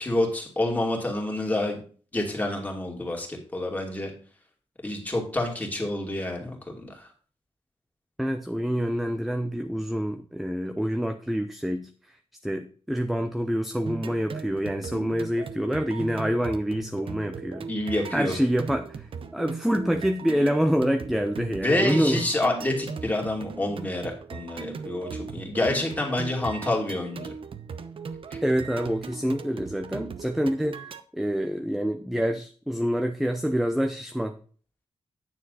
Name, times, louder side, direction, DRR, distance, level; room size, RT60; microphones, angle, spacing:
voice 1, 0.0-1.8 2.1-4.1 4.8-7.1 17.7-18.4 21.5-27.3, left 1 dB, 15° left, 0 dB, 2.6 m, -28 dB
voice 2, 8.2-11.9 12.4-17.7 18.1-19.1 19.3-22.2 28.4-30.8 31.1-34.4, equal, ahead, 7 dB, 0.6 m, -26 dB
sound 1, 13.9-31.0, right 5 dB, 60° right, 0.8 m, -39 dB
9.3 x 6.9 x 4.1 m, 0.41 s
wide cardioid pair, 135°, 10 cm